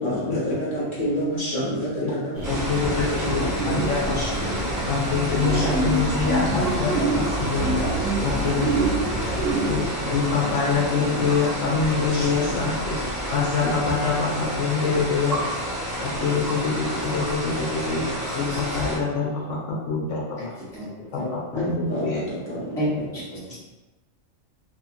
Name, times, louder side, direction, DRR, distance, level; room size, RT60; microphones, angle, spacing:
voice 1, 0.0-5.8 10.0-11.3 11.6-12.6 20.7-20.8 21.5-22.7 22.9-23.0 23.3-23.4, equal, 30° left, -9 dB, 1.1 m, -30 dB
sound 1, 2.3-9.9, right 2 dB, 55° right, 0.9 m, -27 dB
sound 2, 2.4-19.0, equal, 25° right, 0.5 m, -30 dB
voice 2, 2.5-4.2 4.9-7.9 8.2-9.8 10.1-13.0 13.3-15.4 16.0-18.0 18.3-20.5 21.1-22.2, left 5 dB, 75° left, -4 dB, 0.9 m, -25 dB
sound 3, 5.4-15.1, right 4 dB, 75° right, 0.9 m, -37 dB
voice 3, 20.7-21.3 21.5-21.6 22.8-23.2 23.5-23.6, equal, 5° left, -10 dB, 0.9 m, -30 dB
2.7 x 2.4 x 2.5 m, 1.1 s
omnidirectional pair, 1.3 m